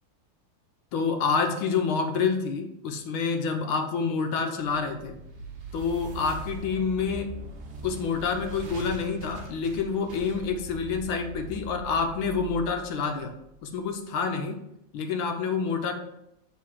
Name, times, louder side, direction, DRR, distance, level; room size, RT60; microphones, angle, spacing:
voice 1, 0.9-5.2 5.7-7.3 7.8-13.4 13.6-14.6 14.9-15.9, left 5 dB, 75° left, 6 dB, 1.5 m, -28 dB
sound 1, 4.6-13.8, right 1 dB, 80° right, 0.5 m, -41 dB
7.6 x 3.7 x 4.7 m, 0.82 s
omnidirectional pair, 2.4 m